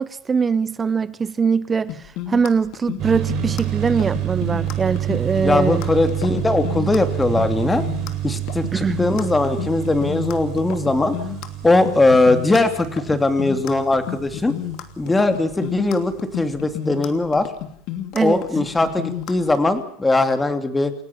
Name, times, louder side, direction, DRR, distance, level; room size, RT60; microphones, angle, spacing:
voice 1, 0.0-2.0 2.3-5.8 8.7-9.0 18.1-18.4, right 5 dB, 15° right, 0.8 m, -22 dB
sound 1, 1.9-19.8, left 12 dB, 50° left, 2.9 m, -31 dB
sound 2, 3.0-15.4, right 12 dB, 40° right, 6.7 m, -28 dB
voice 2, 5.4-7.8 8.2-11.2 11.6-14.5 15.0-17.5 18.2-20.9, left 2 dB, 10° left, 2.8 m, -20 dB
29.5 x 17.0 x 7.2 m
supercardioid pair, 150°, 0 cm